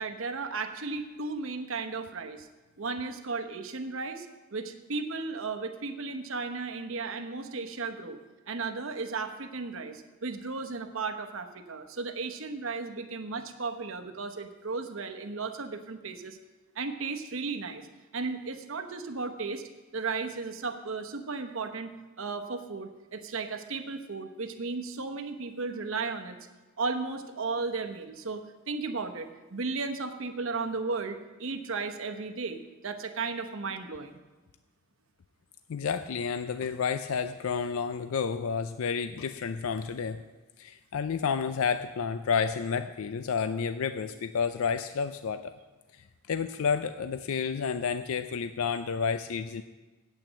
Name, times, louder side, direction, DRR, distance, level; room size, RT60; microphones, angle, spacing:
voice 1, 0.0-2.5 2.8-4.3 4.5-8.2 8.5-16.4 16.7-17.9 18.1-19.6 19.9-21.9 22.2-26.4 26.8-34.2, right 4 dB, 65° right, 6 dB, 1.0 m, -35 dB
voice 2, 35.7-40.2 40.6-45.5 46.3-49.6, left 6 dB, 70° left, 10 dB, 0.4 m, -30 dB
9.1 x 8.6 x 7.6 m, 1.2 s
head